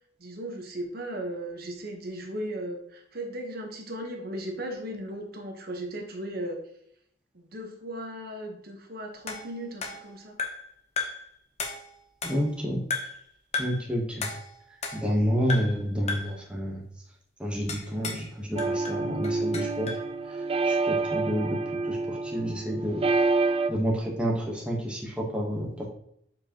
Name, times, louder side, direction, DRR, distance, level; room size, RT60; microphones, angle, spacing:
voice 1, 0.2-6.6 7.3-10.3, right 1 dB, 55° right, 2 dB, 1.1 m, -36 dB
sound 1, 9.3-10.7 11.0-11.3 11.6-12.6 12.9-13.2 13.5-13.9 14.2-15.2 15.5-15.8 16.1-16.4 17.7-18.3 18.6-20.1, left 4 dB, 35° left, 1.0 m, -35 dB
voice 2, 12.2-12.8 13.6-14.3 14.9-16.8 17.4-19.9 20.3-21.6 21.8-23.0 23.7-25.9, equal, 5° right, -2 dB, 1.1 m, -29 dB
sound 2, 18.6-23.7, right 3 dB, 30° right, 0.3 m, -27 dB
7.6 x 4.8 x 2.9 m, 0.70 s
head